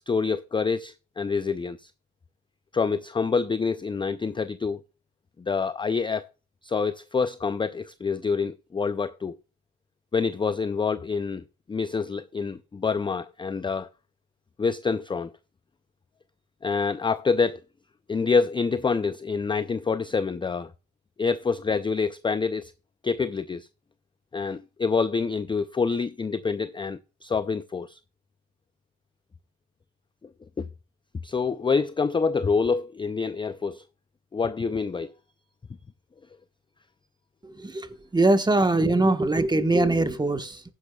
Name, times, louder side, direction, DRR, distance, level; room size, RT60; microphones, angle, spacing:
voice 1, 0.1-1.9 2.7-4.8 5.4-6.3 6.6-9.4 10.1-13.9 14.6-15.3 16.6-17.6 18.1-20.7 21.2-22.7 23.0-23.7 24.3-28.0 30.6-30.7 31.2-33.8 34.3-35.1, left 5 dB, 15° left, 0.4 m, -26 dB
voice 2, 37.4-37.9 38.1-40.6, right 2 dB, 15° right, 1.2 m, -22 dB
14.5 x 10.5 x 2.3 m
cardioid pair, 90°, 30 cm